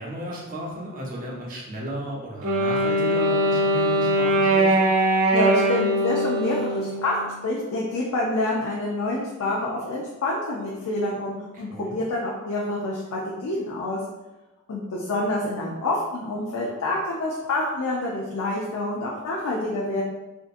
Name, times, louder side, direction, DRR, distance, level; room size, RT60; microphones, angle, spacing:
voice 1, 0.0-4.7 11.5-12.0, right 1 dB, 40° right, -3 dB, 0.6 m, -34 dB
Wind instrument woodwind instrument, 2.4-7.5, right 1 dB, 85° right, 0.4 m, -21 dB
voice 2, 5.3-14.0 14.7-20.0, left 2 dB, 90° left, -4 dB, 0.4 m, -27 dB
2.6 x 2.4 x 2.5 m, 1.1 s
head